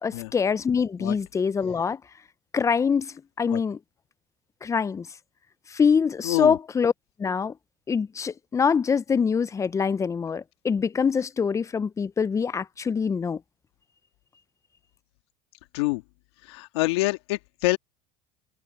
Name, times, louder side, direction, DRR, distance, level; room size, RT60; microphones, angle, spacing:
voice 1, 0.0-2.0 2.5-3.8 4.6-5.1 5.7-6.9 7.2-7.5 7.9-13.4, left 6 dB, 20° left, 0.6 m, -24 dB
voice 2, 6.2-6.6 15.7-16.0 16.5-17.8, left 22 dB, 80° left, 2.0 m, -26 dB
supercardioid pair, 100°, 14 cm